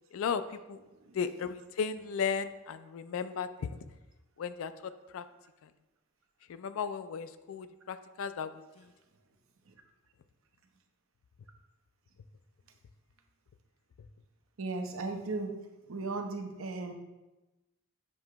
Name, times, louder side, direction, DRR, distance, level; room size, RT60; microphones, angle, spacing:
voice 1, 0.1-0.8 1.1-3.8 4.4-4.7 5.1-5.2 5.6-5.7 6.5-8.8, left 6 dB, 70° left, 12 dB, 0.4 m, -35 dB
voice 2, 14.6-15.6 15.9-16.9, right 3 dB, 70° right, 4 dB, 0.7 m, -36 dB
7.6 x 2.9 x 4.6 m, 1.1 s
head